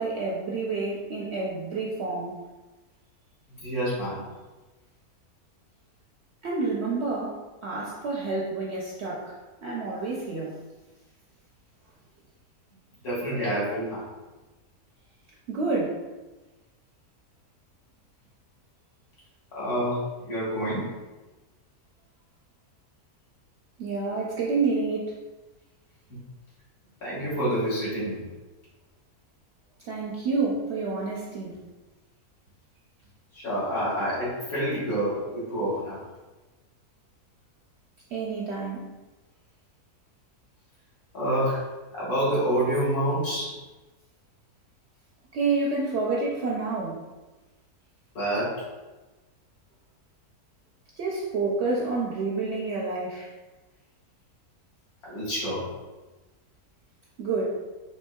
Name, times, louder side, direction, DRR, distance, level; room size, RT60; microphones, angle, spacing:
voice 1, 0.0-2.3 6.4-7.4 7.6-9.3 9.6-10.6 15.5-16.0 23.8-25.1 29.9-31.5 38.1-38.9 45.3-47.0 51.0-53.3 57.2-57.4, right 3 dB, 65° right, -4 dB, 0.6 m, -28 dB
voice 2, 3.6-4.2 13.0-14.0 19.6-20.9 27.0-28.2 33.3-36.0 41.1-41.6 41.9-43.6 48.2-48.6 55.0-55.7, right 1 dB, 75° left, -9 dB, 1.9 m, -27 dB
4.4 x 2.7 x 2.2 m, 1.2 s
omnidirectional pair, 1.6 m